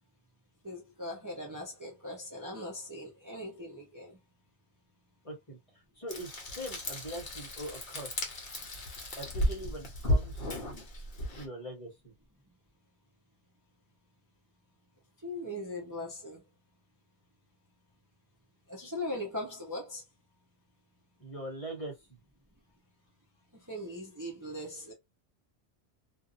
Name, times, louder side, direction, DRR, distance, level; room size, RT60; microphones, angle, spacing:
voice 1, 0.6-4.2 15.2-16.4 18.7-20.0 23.7-24.9, left 1 dB, 20° right, 0.8 m, -39 dB
voice 2, 5.2-8.1 9.1-10.5 11.4-12.1 21.2-22.2, right 1 dB, 30° left, 1.1 m, -42 dB
Frying (food), 6.1-11.5, left 1 dB, 55° left, 1.1 m, -34 dB
2.6 x 2.6 x 2.5 m
omnidirectional pair, 1.2 m